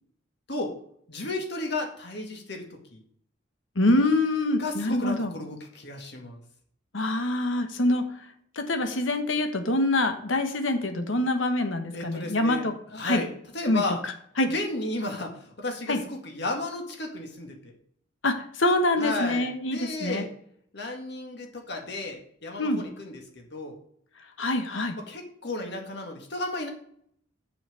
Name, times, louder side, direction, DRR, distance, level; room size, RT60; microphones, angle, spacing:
voice 1, 1.1-2.6 2.9-3.0 4.6-6.4 11.9-14.0 14.4-17.7 19.0-20.3 20.7-23.8 24.9-26.7, left 2 dB, 60° left, 3 dB, 2.0 m, -33 dB
voice 2, 3.8-5.3 6.9-8.0 8.6-12.7 13.0-13.2 13.7-13.8 14.4-14.5 15.9-16.0 18.2-20.2 22.6-22.8 24.4-24.9, left 2 dB, 80° left, 7 dB, 1.2 m, -25 dB
7.0 x 5.8 x 6.7 m, 0.64 s
head